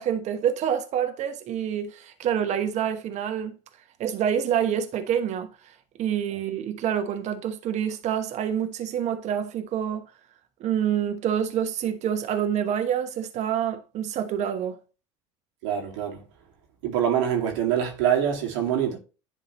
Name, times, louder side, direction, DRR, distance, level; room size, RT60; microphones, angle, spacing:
voice 1, 0.0-3.6 4.0-5.5 6.0-10.1 10.6-14.8, right 9 dB, 45° right, 1.1 m, -27 dB
voice 2, 15.6-16.2 16.8-19.0, right 9 dB, 70° right, 2.1 m, -25 dB
10.5 x 3.7 x 3.0 m
hypercardioid pair, 80°, 16 cm